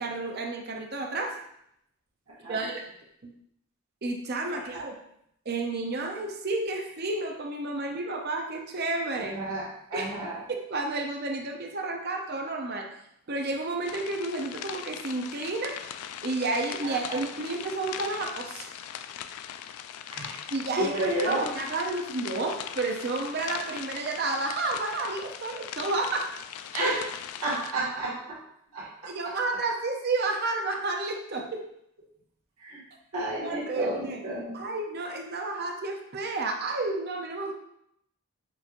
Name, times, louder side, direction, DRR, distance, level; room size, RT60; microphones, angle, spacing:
voice 1, 0.0-1.4 2.4-2.9 3.2-3.3 4.0-5.0 5.5-9.4 9.9-10.1 10.5-12.9 13.3-15.8 16.2-18.7 20.5-26.3 28.8-31.7 33.4-34.2 34.5-37.5, right 2 dB, 45° right, 2 dB, 0.7 m, -31 dB
voice 2, 4.5-4.9 9.2-10.4 16.8-17.2 20.1-20.4 20.8-21.5 26.7-27.1 27.4-28.4 28.7-29.4 32.6-32.8 33.1-34.6, right 1 dB, 85° right, -7 dB, 1.8 m, -31 dB
sound 1, 13.8-27.7, left 9 dB, 90° left, 0.3 m, -40 dB
6.6 x 3.1 x 2.5 m, 0.75 s
head